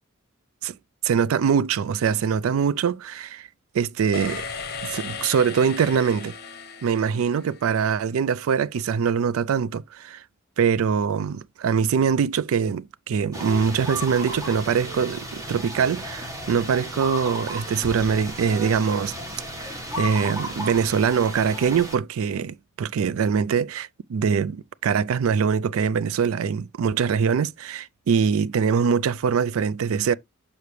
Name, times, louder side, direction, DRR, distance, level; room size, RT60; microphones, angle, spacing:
voice 1, 1.0-3.5 3.7-4.5 4.8-6.3 6.8-10.2 10.6-19.2 19.6-30.1, right 6 dB, 75° right, 0.3 m, -23 dB
sound 1, 4.1-8.0, left 5 dB, 50° left, 0.8 m, -36 dB
sound 2, 13.3-22.0, equal, 15° right, 1.3 m, -34 dB
6.7 x 5.7 x 3.1 m
head